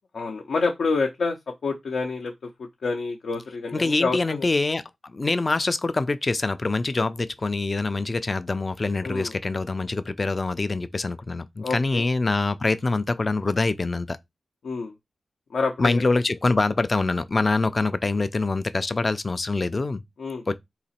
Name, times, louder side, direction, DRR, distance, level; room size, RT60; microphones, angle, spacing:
voice 1, 0.1-1.4 1.6-2.3 2.6-4.5 9.0-9.3 11.6-12.0 14.6-14.9 15.5-16.0 20.2-20.4, left 4 dB, 80° left, 0.6 m, -27 dB
voice 2, 3.7-4.8 5.1-14.2 15.8-20.0 20.5-20.6, left 3 dB, 35° left, 0.4 m, -25 dB
3.9 x 2.9 x 4.1 m
wide cardioid pair, 95°, 0 cm